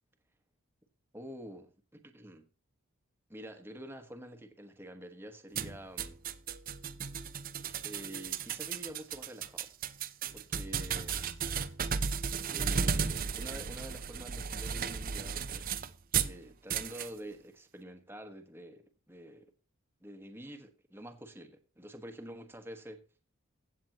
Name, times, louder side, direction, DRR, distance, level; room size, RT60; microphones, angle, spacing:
voice 1, 1.1-2.5 3.3-6.2 7.8-9.7 10.3-11.3 12.5-15.9 16.2-19.5 20.0-23.0, equal, 10° right, 1.2 m, -47 dB
sound 1, 5.5-16.4 16.7-17.1, right 6 dB, 40° right, 0.6 m, -35 dB
15.5 x 7.9 x 2.9 m
head